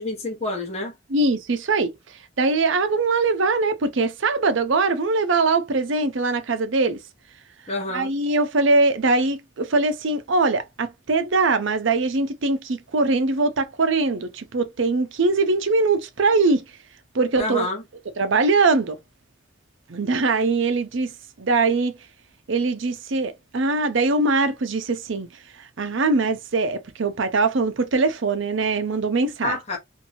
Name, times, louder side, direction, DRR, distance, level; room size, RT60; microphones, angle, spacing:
voice 1, 0.0-0.9 7.7-8.1 17.4-17.8 29.4-29.8, left 2 dB, 30° left, 1.0 m, -28 dB
voice 2, 1.1-1.9 2.4-7.0 7.9-16.6 17.1-17.7 18.2-19.0 19.9-21.1 21.4-22.0 22.5-25.3 25.8-29.6, right 3 dB, 70° right, 0.6 m, -22 dB
3.0 x 2.6 x 2.6 m
head